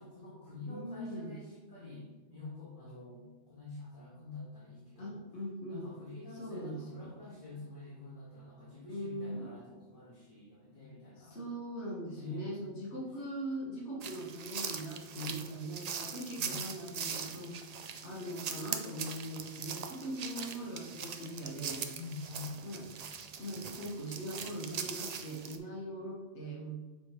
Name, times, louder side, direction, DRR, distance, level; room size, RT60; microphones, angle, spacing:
voice 1, 0.0-5.2 5.7-11.4 12.1-12.5 15.1-15.4 16.3-16.8 21.9-22.6, left 3 dB, 45° left, -11 dB, 1.8 m, -47 dB
voice 2, 0.7-1.3 5.0-5.9 6.3-7.1 8.9-9.5 11.2-17.6 18.0-21.9 22.6-22.8 23.4-26.8, right 1 dB, 70° left, -4 dB, 1.6 m, -41 dB
sound 1, 14.0-25.6, right 7 dB, 75° right, 0.3 m, -41 dB
7.0 x 3.2 x 4.5 m, 1.2 s
omnidirectional pair, 1.2 m